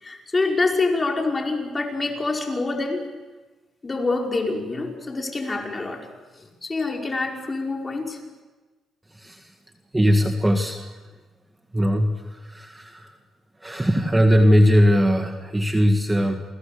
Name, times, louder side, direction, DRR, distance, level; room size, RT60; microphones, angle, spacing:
voice 1, 0.0-3.0 3.8-6.1 6.3-8.2, left 3 dB, 25° left, 1 dB, 5.4 m, -26 dB
voice 2, 9.1-9.5 9.9-10.9 11.7-13.1 13.6-16.4, equal, 10° right, 4 dB, 2.0 m, -20 dB
30.0 x 22.0 x 6.9 m, 1.3 s
cardioid pair, 90°, 0 cm